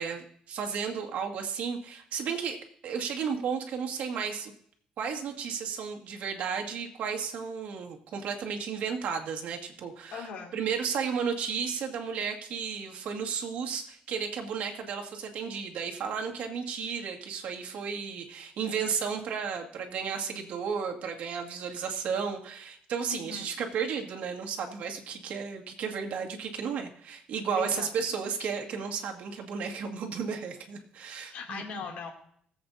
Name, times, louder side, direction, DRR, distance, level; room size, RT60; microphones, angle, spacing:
voice 1, 0.0-4.5 5.0-10.3 10.5-31.6, right 6 dB, 70° right, 2 dB, 2.0 m, -33 dB
voice 2, 10.1-10.5 23.0-23.6 27.5-28.5 31.2-32.1, left 5 dB, 80° left, 1 dB, 2.7 m, -40 dB
20.0 x 8.0 x 2.7 m, 0.62 s
cardioid pair, 125°, 3 cm